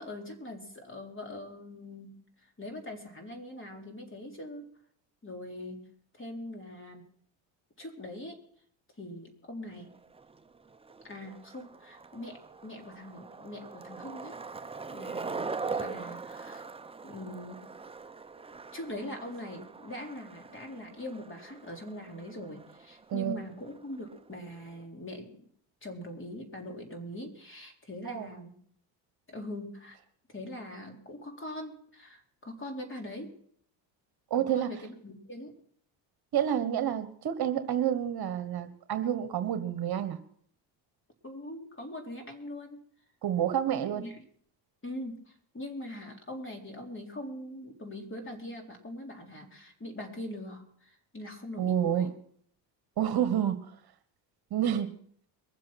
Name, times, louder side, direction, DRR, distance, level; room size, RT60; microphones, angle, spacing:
voice 1, 0.0-4.7 5.2-5.9 6.2-7.1 7.8-8.4 9.0-10.0 11.0-14.4 14.9-16.6 17.0-17.7 18.7-25.4 25.8-28.6 29.3-30.0 30.3-33.4 34.4-35.6 41.2-42.8 43.7-44.3 44.8-52.1, left 1 dB, 25° left, 2 dB, 3.9 m, -42 dB
Skateboard, 9.7-24.8, right 4 dB, 10° right, 0.7 m, -42 dB
voice 2, 34.3-34.7 36.3-40.2 43.2-44.0 51.6-52.1 53.0-53.6 54.5-54.9, right 10 dB, 50° right, 10 dB, 1.3 m, -29 dB
23.0 x 7.7 x 5.9 m, 0.63 s
supercardioid pair, 85°, 47 cm